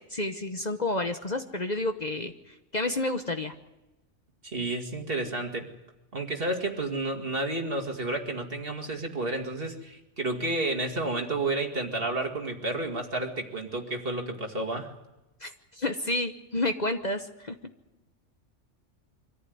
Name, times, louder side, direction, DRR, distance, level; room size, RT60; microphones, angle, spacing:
voice 1, 0.1-2.3 2.7-3.5 15.4-17.6, left 2 dB, 35° left, 7 dB, 1.1 m, -30 dB
voice 2, 4.4-5.7 6.1-14.9, right 2 dB, 50° right, 3 dB, 2.5 m, -31 dB
24.5 x 14.5 x 9.4 m, 1.0 s
omnidirectional pair, 1.3 m